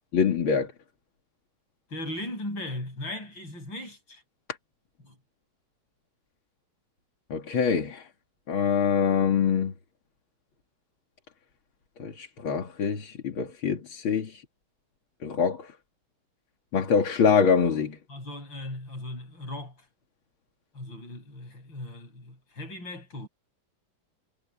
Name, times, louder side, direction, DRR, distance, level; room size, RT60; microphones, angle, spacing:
voice 1, 0.1-0.7 7.3-8.1 8.5-9.7 12.0-14.4 15.2-15.7 16.7-18.0, left 6 dB, 85° left, 3.0 m, -24 dB
voice 2, 1.9-4.2 5.0-5.2 18.1-19.8 20.7-23.3, left 1 dB, 70° left, 8.7 m, -38 dB
omnidirectional pair, 2.2 m